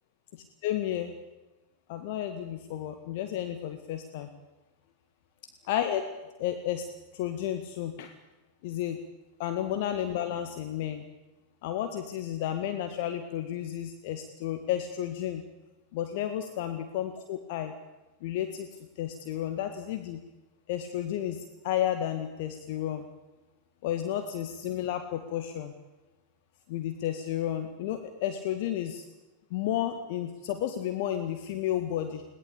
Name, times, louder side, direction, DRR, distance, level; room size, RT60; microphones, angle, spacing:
voice 1, 0.6-1.1 1.9-4.3 5.6-6.0 6.4-6.8 7.1-8.1 8.6-9.0 9.4-11.0 11.6-15.4 15.9-17.7 18.2-18.7 19.0-20.2 20.7-23.0 23.8-25.7 26.7-29.0 29.5-32.2, left 11 dB, 50° left, 7 dB, 1.8 m, -32 dB
21.5 x 18.5 x 8.6 m, 1.1 s
figure-of-eight pair, 90°, 0 cm